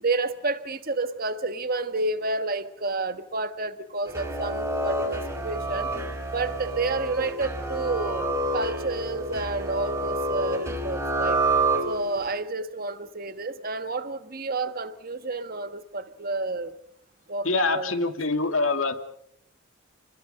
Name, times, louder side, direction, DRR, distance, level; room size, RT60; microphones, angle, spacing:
voice 1, 0.0-5.9 6.3-11.4 11.8-16.7 17.3-17.9, right 3 dB, 45° right, 1.4 m, -30 dB
sound 1, 4.1-12.3, right 2 dB, 15° right, 4.4 m, -28 dB
voice 2, 17.4-18.9, left 3 dB, 70° left, 2.3 m, -24 dB
29.5 x 21.0 x 5.5 m
head